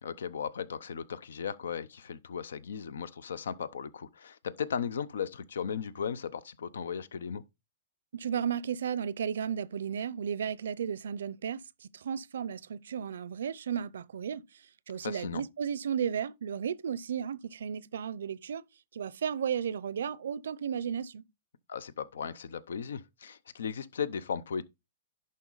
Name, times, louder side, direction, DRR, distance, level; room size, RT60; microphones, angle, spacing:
voice 1, 0.0-7.4 15.0-15.4 21.7-24.6, left 7 dB, 90° left, 0.6 m, -36 dB
voice 2, 8.1-14.4 14.9-18.6 18.9-21.2, right 8 dB, 85° right, 0.5 m, -34 dB
11.0 x 4.2 x 3.9 m
hypercardioid pair, 155°, 0 cm